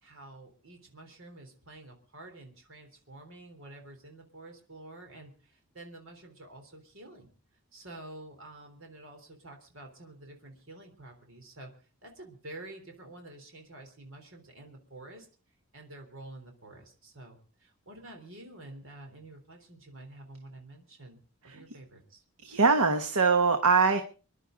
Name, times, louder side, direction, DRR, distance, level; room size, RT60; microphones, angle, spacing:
voice 1, 0.0-7.3 7.7-15.3 15.7-22.2, right 2 dB, 60° right, 4 dB, 3.5 m, -49 dB
voice 2, 22.4-24.0, right 4 dB, 85° right, 7 dB, 1.3 m, -23 dB
26.0 x 11.0 x 3.8 m, 0.37 s
head